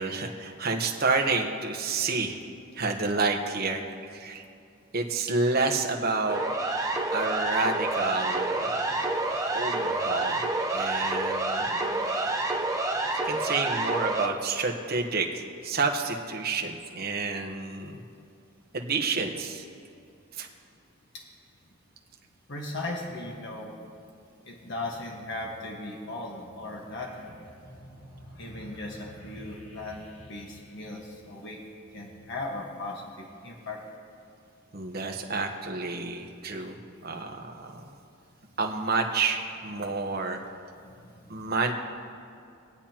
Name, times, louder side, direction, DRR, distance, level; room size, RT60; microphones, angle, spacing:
voice 1, 0.0-2.4 2.7-3.8 4.1-4.4 4.9-6.4 7.1-9.0 9.5-10.4 10.7-12.2 13.2-18.0 18.7-19.6 20.3-20.5 34.7-36.8 37.0-37.8 38.6-40.4 41.3-41.7, right 3 dB, 50° right, 3 dB, 1.1 m, -29 dB
Siren, 6.3-14.3, right 2 dB, 15° right, 0.8 m, -28 dB
voice 2, 22.5-23.7 24.4-27.3 28.4-30.0 30.3-31.6 31.9-33.8 40.7-40.9, left 2 dB, 60° left, -2 dB, 1.6 m, -37 dB
sound 1, 26.8-31.8, equal, 85° left, 2.2 m, -49 dB
25.5 x 8.7 x 3.0 m, 2.4 s
head